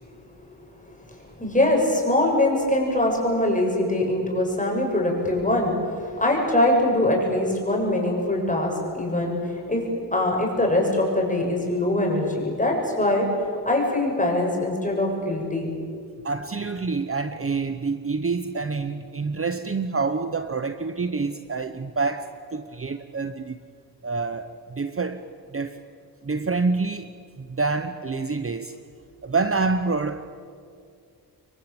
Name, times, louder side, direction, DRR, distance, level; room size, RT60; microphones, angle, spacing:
voice 1, 0.2-9.9 10.1-13.3 13.7-15.7, left 1 dB, 20° left, 0 dB, 7.2 m, -23 dB
voice 2, 16.2-23.6 24.0-25.8 26.2-28.8 29.2-30.5, right 4 dB, 35° right, 10 dB, 0.9 m, -27 dB
27.5 x 23.0 x 8.9 m, 2.3 s
wide cardioid pair, 115°, 40 cm